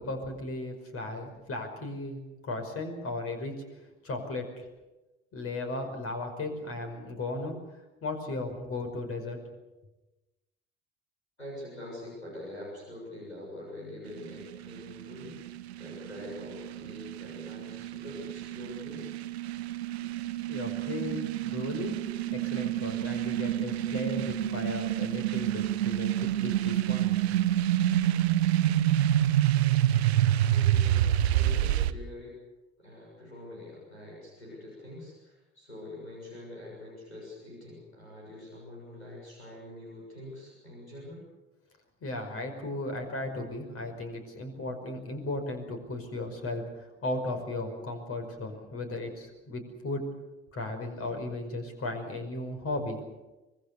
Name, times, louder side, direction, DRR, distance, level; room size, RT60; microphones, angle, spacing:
voice 1, 0.0-3.5 3.8-4.7 5.3-9.4 20.5-22.0 22.3-27.4 42.0-50.0 50.5-53.0, left 2 dB, 45° left, 6 dB, 5.4 m, -36 dB
voice 2, 11.4-15.4 15.8-19.1 30.5-32.4 32.8-41.3, left 1 dB, 90° left, -3 dB, 6.8 m, -44 dB
sound 1, 14.1-31.9, right 12 dB, 75° right, 0.8 m, -28 dB
25.0 x 21.5 x 6.8 m, 1.1 s
figure-of-eight pair, 55°, 32 cm